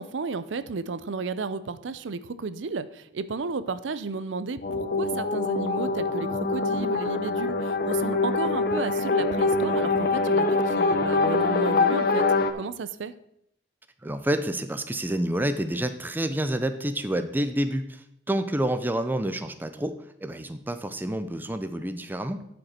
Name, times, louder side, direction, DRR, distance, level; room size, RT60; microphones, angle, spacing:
voice 1, 0.0-12.3 12.5-13.1, right 4 dB, 80° right, 14 dB, 0.5 m, -33 dB
sound 1, 4.6-12.5, left 3 dB, 55° left, 0.7 m, -24 dB
voice 2, 14.0-22.5, right 1 dB, 10° right, 9 dB, 0.5 m, -28 dB
11.5 x 5.3 x 4.3 m, 0.73 s
head